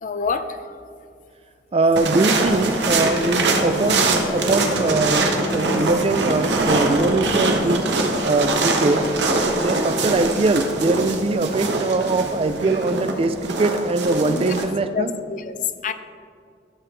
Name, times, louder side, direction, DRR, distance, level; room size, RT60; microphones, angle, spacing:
voice 1, 0.0-0.8 14.2-14.5 14.9-15.6 15.8-15.9, left 5 dB, 45° left, 11 dB, 0.4 m, -27 dB
voice 2, 1.7-7.9 8.2-9.2 9.6-15.2, right 2 dB, 35° right, 11 dB, 0.4 m, -22 dB
sound 1, 2.0-14.6, right 3 dB, 90° right, 1.1 m, -23 dB
sound 2, 2.4-13.9, left 1 dB, 85° left, 0.9 m, -33 dB
12.0 x 6.9 x 3.3 m, 2.3 s
head